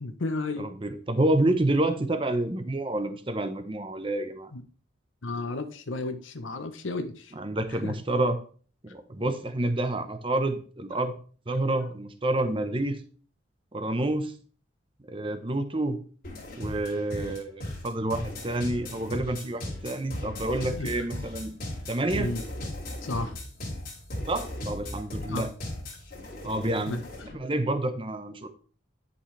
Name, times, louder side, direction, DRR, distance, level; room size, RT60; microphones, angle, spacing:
voice 1, 0.0-0.7 4.5-4.6 5.2-7.3 7.7-7.9 20.7-20.9 22.1-22.4 23.0-23.3 25.3-25.5 26.8-27.0, left 2 dB, 80° left, 8 dB, 0.9 m, -33 dB
voice 2, 0.6-4.5 7.3-8.4 8.9-11.1 11.5-13.0 13.7-14.3 15.1-16.0 16.5-21.5 21.9-22.3 24.3-25.5 26.4-27.0 27.3-28.5, right 1 dB, 25° right, 9 dB, 0.8 m, -28 dB
sound 1, 16.2-27.3, left 1 dB, 45° left, 2.6 m, -37 dB
10.0 x 5.4 x 3.3 m, 0.42 s
head